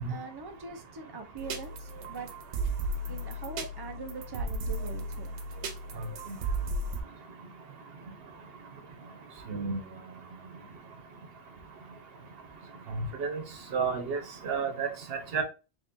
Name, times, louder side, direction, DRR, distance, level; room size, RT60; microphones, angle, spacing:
voice 1, 0.1-2.3 3.1-5.4, right 4 dB, 30° right, 0.4 m, -42 dB
sound 1, 1.4-7.0, right 2 dB, 85° right, 1.0 m, -35 dB
voice 2, 9.5-9.8 12.9-13.4 13.7-15.4, right 5 dB, 65° right, 1.0 m, -31 dB
3.7 x 3.5 x 2.5 m
omnidirectional pair, 1.1 m